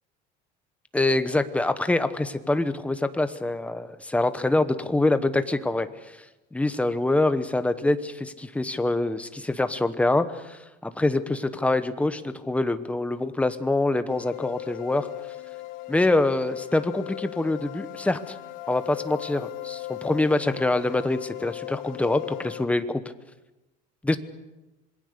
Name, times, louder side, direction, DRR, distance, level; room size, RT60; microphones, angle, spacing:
voice 1, 0.9-6.2 6.5-15.1 15.9-18.4 18.7-23.0 24.0-24.2, left 2 dB, 5° left, 10 dB, 1.0 m, -25 dB
sound 1, 14.1-22.6, left 17 dB, 65° left, 1.6 m, -38 dB
26.5 x 22.0 x 6.8 m, 1.0 s
cardioid pair, 160°, 21 cm